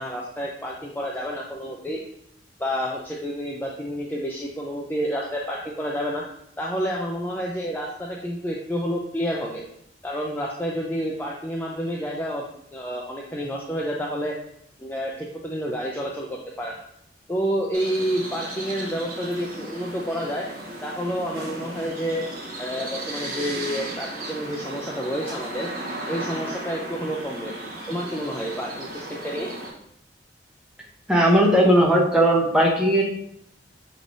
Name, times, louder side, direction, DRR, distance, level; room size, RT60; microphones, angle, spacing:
voice 1, 0.0-2.0 2.6-6.2 6.6-9.6 10.0-12.5 12.7-14.4 14.8-16.8 17.3-20.5 20.8-22.3 22.6-25.7 26.1-27.5 27.9-29.5, equal, 10° left, -3 dB, 0.4 m, -29 dB
sound 1, 17.7-29.7, right 1 dB, 55° right, 1.1 m, -35 dB
voice 2, 31.1-33.0, right 1 dB, 5° right, -2 dB, 0.8 m, -17 dB
6.3 x 3.2 x 2.6 m, 0.73 s
head